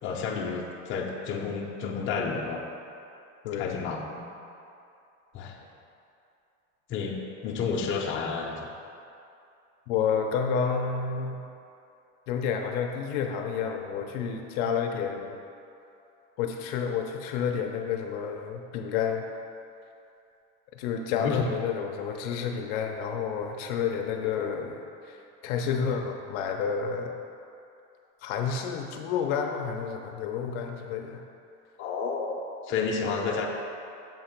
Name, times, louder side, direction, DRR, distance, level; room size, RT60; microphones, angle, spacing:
voice 1, 0.0-2.6 3.6-4.0 5.3-5.6 6.9-7.2 7.4-8.5 21.1-21.4 31.8-33.5, left 5 dB, 35° left, 0 dB, 0.7 m, -30 dB
voice 2, 3.4-3.8 9.9-11.4 12.3-15.3 16.4-19.2 20.7-25.2 25.4-27.1 28.2-31.2, left 6 dB, 75° left, 3 dB, 0.7 m, -30 dB
7.2 x 2.9 x 5.8 m, 2.7 s
cardioid pair, 150°, 34 cm